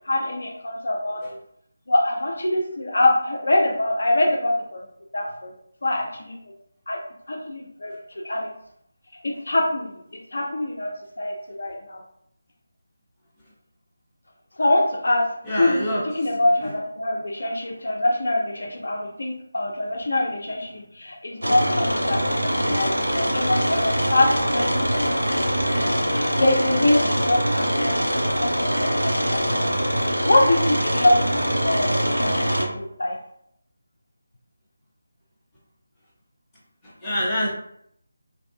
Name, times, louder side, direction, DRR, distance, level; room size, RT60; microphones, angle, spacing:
voice 1, 0.1-1.2 1.9-4.8 5.1-5.5 5.8-6.4 6.9-7.0 7.3-8.5 9.2-10.0 10.3-12.0 14.6-15.2 15.6-15.9 16.1-25.1 25.4-28.5 28.8-28.9 29.3-29.9 30.3-33.2, left 1 dB, 60° left, 1 dB, 0.4 m, -24 dB
voice 2, 15.4-16.7 36.8-37.5, equal, 10° left, -10 dB, 0.7 m, -27 dB
sound 1, 21.4-32.7, equal, 90° right, 0.4 m, -23 dB
2.6 x 2.3 x 2.3 m, 0.70 s
figure-of-eight pair, 160°, 0 cm